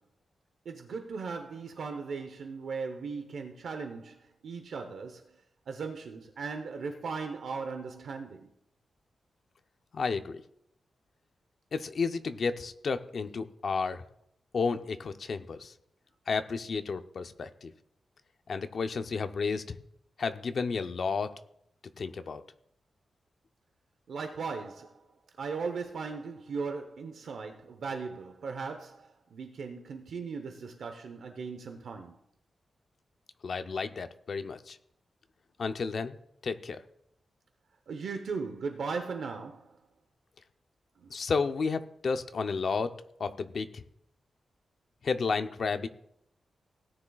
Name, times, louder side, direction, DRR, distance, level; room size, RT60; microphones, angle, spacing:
voice 1, 0.7-4.2 4.4-5.2 5.7-8.5 24.1-24.9 25.4-32.2 37.9-39.6, right 5 dB, 70° right, 0.9 m, -37 dB
voice 2, 9.9-10.4 11.7-14.0 14.5-15.7 16.3-17.7 18.5-19.8 20.2-21.3 22.0-22.4 33.4-34.8 35.6-36.1 36.4-36.8 41.1-42.9 43.2-43.8 45.0-45.9, left 4 dB, 50° left, 0.6 m, -32 dB
17.5 x 9.8 x 2.4 m
wide cardioid pair, 175°, 0 cm